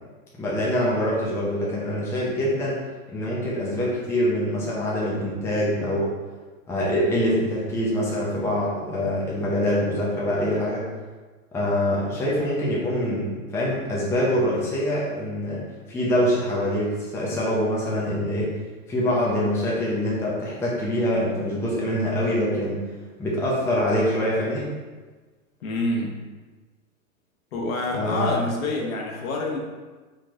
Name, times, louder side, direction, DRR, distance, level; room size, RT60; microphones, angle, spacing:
voice 1, 0.3-2.8 3.1-6.1 6.7-10.8 11.5-13.3 13.5-15.6 15.9-18.5 18.9-22.8 23.2-24.7 27.9-28.4, equal, 5° left, -6 dB, 0.6 m, -24 dB
voice 2, 25.6-26.2 27.5-29.6, left 2 dB, 70° left, 0 dB, 1.2 m, -27 dB
4.2 x 3.2 x 3.6 m, 1.3 s
hypercardioid pair, 130°, 43 cm